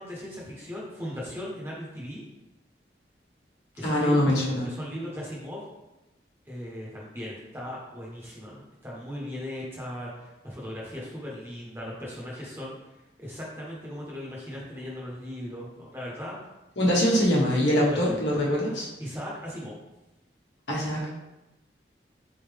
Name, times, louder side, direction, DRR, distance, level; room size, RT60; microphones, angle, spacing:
voice 1, 0.0-2.2 3.7-4.2 4.6-5.6 6.5-12.7 13.2-16.4 17.8-18.2 19.0-19.7, equal, 15° right, -4 dB, 0.9 m, -37 dB
voice 2, 3.8-4.7 16.8-18.9 20.7-21.1, equal, 80° left, -4 dB, 1.2 m, -23 dB
4.0 x 3.7 x 3.3 m, 0.97 s
head